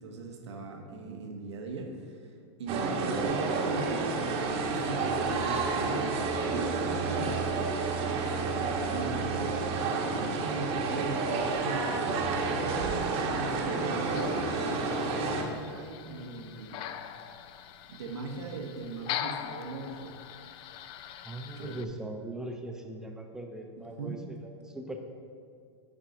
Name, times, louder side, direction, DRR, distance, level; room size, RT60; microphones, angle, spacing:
voice 1, 0.0-2.3 2.6-16.9 17.9-20.2 21.4-21.8 23.8-24.2, right 3 dB, 90° right, 2 dB, 1.2 m, -40 dB
sound 1, 2.7-15.4, right 4 dB, 45° right, 1.2 m, -30 dB
sound 2, 14.0-21.8, left 10 dB, 40° left, 0.4 m, -42 dB
voice 2, 21.2-25.0, right 2 dB, 5° right, 3 dB, 0.7 m, -40 dB
8.9 x 3.9 x 5.8 m, 2.3 s
hypercardioid pair, 120°, 14 cm